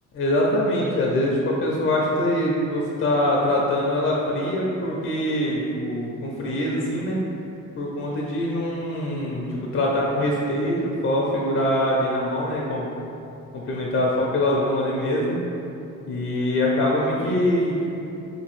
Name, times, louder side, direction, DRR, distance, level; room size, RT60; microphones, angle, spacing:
voice 1, 0.1-7.2 7.8-12.9 13.7-15.4 16.1-18.0, left 1 dB, 40° left, -3 dB, 0.4 m, -23 dB
2.7 x 2.3 x 3.0 m, 2.8 s
cardioid pair, 90°, 30 cm